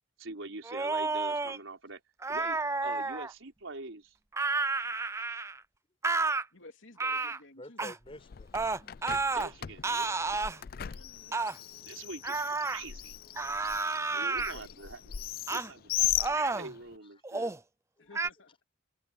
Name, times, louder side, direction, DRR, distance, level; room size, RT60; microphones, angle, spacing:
voice 1, 0.2-2.0 2.3-4.2 9.3-11.4 11.9-13.2 14.1-15.2 15.5-17.5, right 3 dB, 85° right, 4.1 m, -45 dB
sound 1, 0.6-1.6 2.2-3.3 4.3-5.6 6.0-6.4 7.0-7.4 7.8-8.0 8.5-9.5 9.8-10.6 11.3-11.6 12.2-12.8 13.4-14.5 15.5-15.7 16.2-16.7 17.2-17.6 18.1-18.3, right 3 dB, 15° right, 0.5 m, -31 dB
voice 2, 6.5-7.8 14.1-14.8 18.0-18.5, left 2 dB, 80° left, 3.0 m, -53 dB
voice 3, 7.6-8.5 11.3-12.1 13.4-13.6 18.0-18.1, left 1 dB, 30° left, 6.7 m, -50 dB
Bird, 8.1-17.0, left 13 dB, 50° left, 0.4 m, -37 dB
head